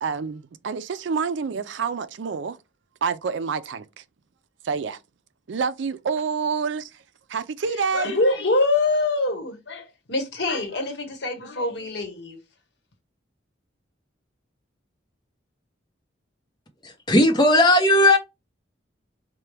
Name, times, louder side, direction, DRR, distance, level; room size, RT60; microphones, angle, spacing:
voice 1, 0.0-2.6 3.0-4.0 4.6-5.0 5.5-7.0 7.3-8.2, right 5 dB, 75° right, 0.4 m, -28 dB
voice 2, 7.9-12.4, left 2 dB, 60° left, 1.1 m, -24 dB
voice 3, 16.8-18.2, left 1 dB, 20° left, 0.7 m, -17 dB
4.4 x 2.2 x 3.2 m
head